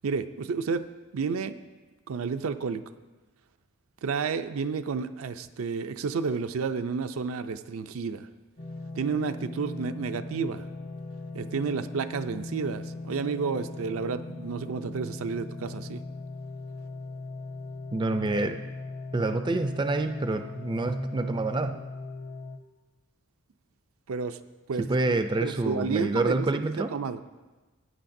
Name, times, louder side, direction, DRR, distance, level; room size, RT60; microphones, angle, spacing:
voice 1, 0.0-0.9 1.1-1.5 2.1-2.8 4.0-8.3 9.0-10.7 11.3-16.0 24.1-24.4 24.7-26.5 26.9-27.2, right 5 dB, 80° right, 9 dB, 0.5 m, -31 dB
sound 1, 8.6-22.6, left 2 dB, 40° left, 0.7 m, -39 dB
voice 2, 17.9-18.6 19.1-21.8 24.8-26.9, right 2 dB, 20° right, 8 dB, 0.4 m, -27 dB
15.5 x 9.1 x 2.6 m, 1.2 s
head